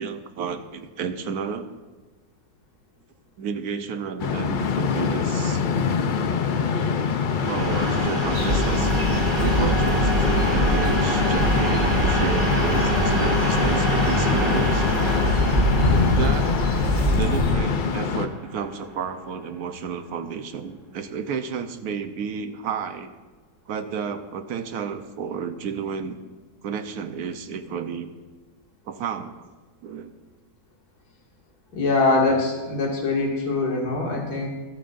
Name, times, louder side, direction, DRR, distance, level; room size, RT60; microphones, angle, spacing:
voice 1, 0.0-1.7 3.4-5.6 6.6-6.7 7.5-9.0 9.4-14.9 16.1-16.5 17.1-23.1 23.7-26.2 26.6-28.1 28.8-29.5 29.8-30.1, right 6 dB, 75° right, 9 dB, 1.3 m, -31 dB
sound 1, 4.2-18.3, left 6 dB, 60° left, 0.5 m, -24 dB
sound 2, 7.4-19.1, right 1 dB, 15° right, 4.5 m, -25 dB
sound 3, 8.3-17.5, equal, 50° right, 3.8 m, -26 dB
voice 2, 31.7-34.5, left 3 dB, 75° left, -2 dB, 2.5 m, -23 dB
24.5 x 9.0 x 2.6 m, 1.3 s
omnidirectional pair, 1.7 m